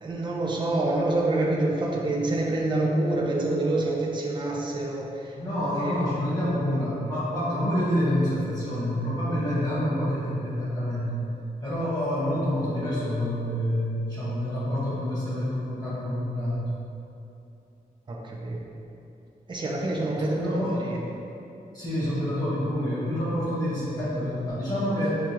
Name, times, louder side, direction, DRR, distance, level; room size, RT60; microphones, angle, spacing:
voice 1, 0.0-6.0 18.1-18.6 19.5-21.0, right 2 dB, 30° right, -3 dB, 0.5 m, -27 dB
voice 2, 5.3-11.1 11.6-16.7 20.3-20.7 21.7-25.2, equal, 25° left, -10 dB, 1.5 m, -27 dB
6.2 x 2.3 x 2.9 m, 2.9 s
wide cardioid pair, 165°, 16 cm